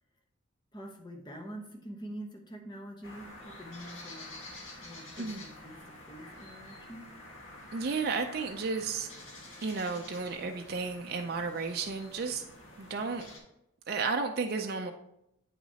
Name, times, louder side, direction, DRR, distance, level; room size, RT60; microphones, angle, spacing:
voice 1, 0.7-4.3 4.8-7.1, right 1 dB, 20° left, 2 dB, 0.9 m, -45 dB
sound 1, 3.0-13.4, left 1 dB, 75° left, 1.7 m, -49 dB
voice 2, 7.7-9.1 9.6-12.4 12.8-13.3 13.9-14.9, right 4 dB, 50° right, 3 dB, 0.4 m, -33 dB
8.7 x 5.9 x 2.8 m, 0.82 s
head